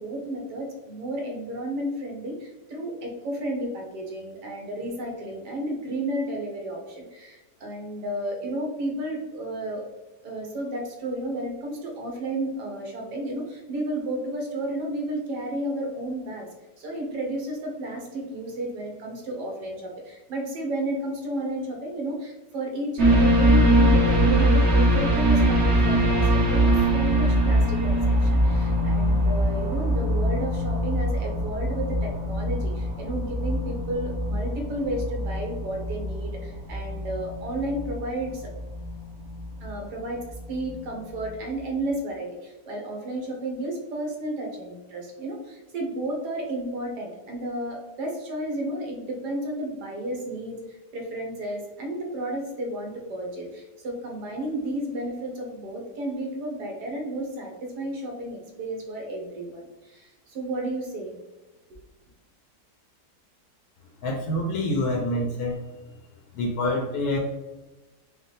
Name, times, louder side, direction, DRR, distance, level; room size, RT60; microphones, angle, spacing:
voice 1, 0.0-9.8 10.2-16.5 16.8-38.5 39.6-61.1, right 1 dB, 75° right, 1 dB, 1.5 m, -32 dB
sound 1, 23.0-40.8 41.2-41.3, equal, 50° right, 1.1 m, -23 dB
voice 2, 64.0-65.6 66.3-67.2, left 1 dB, 70° left, 1 dB, 1.0 m, -26 dB
5.0 x 2.3 x 3.2 m, 1.1 s
omnidirectional pair, 1.8 m